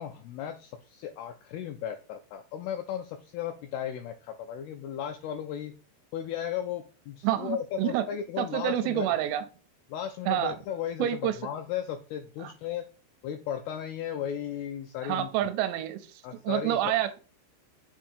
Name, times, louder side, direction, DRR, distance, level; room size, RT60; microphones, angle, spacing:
voice 1, 0.0-5.7 6.1-9.2 9.9-12.8 13.2-15.3 16.2-16.9, left 9 dB, 85° left, 6 dB, 2.2 m, -35 dB
voice 2, 7.2-8.0 8.4-9.4 10.3-10.5 11.0-11.4 12.4-12.5 15.0-16.0 16.4-17.2, right 12 dB, 85° right, 10 dB, 2.8 m, -28 dB
7.2 x 2.7 x 5.1 m, 0.35 s
omnidirectional pair, 4.9 m